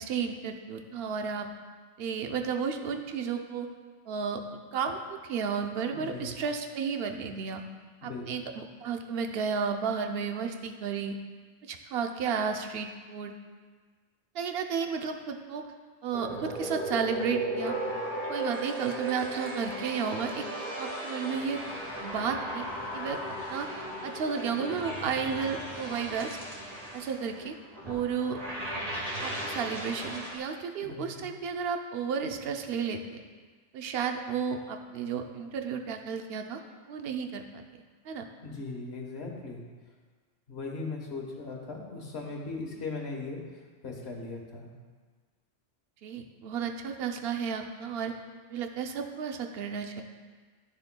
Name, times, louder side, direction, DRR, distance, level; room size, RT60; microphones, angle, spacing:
voice 1, 0.0-1.5 2.0-3.7 4.1-4.4 4.7-7.6 8.0-11.2 11.6-13.3 14.3-15.7 16.0-17.7 18.3-20.4 20.8-21.6 22.0-22.7 22.9-23.2 23.5-23.7 24.0-26.4 26.9-27.5 27.8-28.4 29.2-33.0 33.7-36.6 36.9-37.4 37.7-38.2 46.0-48.1 48.5-50.0, right 6 dB, 60° right, 5 dB, 0.8 m, -32 dB
voice 2, 5.9-6.4 8.0-8.5 30.8-31.3 38.4-39.6 40.5-43.4 43.8-44.7, left 3 dB, 60° left, 0 dB, 1.4 m, -38 dB
sound 1, 16.1-30.4, right 1 dB, 30° right, 1.4 m, -36 dB
12.0 x 6.7 x 2.2 m, 1.5 s
omnidirectional pair, 1.3 m